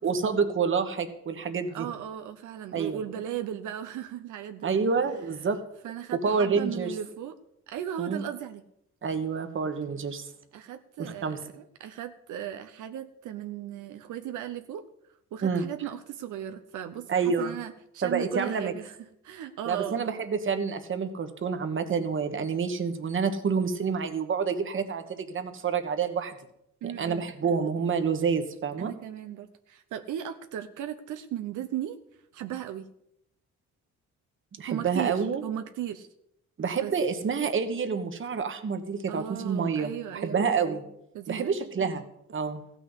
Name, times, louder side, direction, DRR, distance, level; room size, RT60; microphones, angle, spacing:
voice 1, 0.0-1.9 2.7-3.0 4.6-5.6 6.1-6.9 8.0-8.2 9.0-10.3 11.0-11.4 15.4-15.6 17.1-17.6 18.0-18.7 19.6-26.3 26.8-28.9 34.6-35.4 36.6-40.9 41.3-42.0 42.3-42.6, right 5 dB, 45° right, 8 dB, 1.4 m, -28 dB
voice 2, 1.7-4.8 5.8-7.4 7.7-8.6 10.5-14.8 15.3-19.0 19.2-20.1 26.8-27.2 28.8-32.0 32.3-32.9 34.6-36.1 36.8-36.9 39.1-40.5 41.1-41.5, right 10 dB, 85° right, 8 dB, 0.8 m, -36 dB
15.0 x 6.2 x 8.0 m, 0.78 s
cardioid pair, 120°, 29 cm